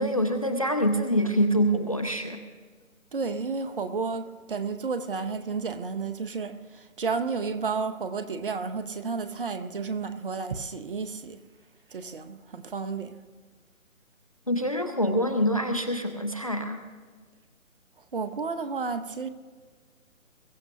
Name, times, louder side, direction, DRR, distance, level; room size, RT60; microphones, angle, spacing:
voice 1, 0.0-2.4 14.5-16.8, equal, 25° left, 0.5 m, -25 dB
voice 2, 3.1-11.4 11.9-13.2 18.1-19.3, right 4 dB, 40° right, 0.7 m, -32 dB
22.5 x 15.0 x 2.8 m
figure-of-eight pair, 150°, 43 cm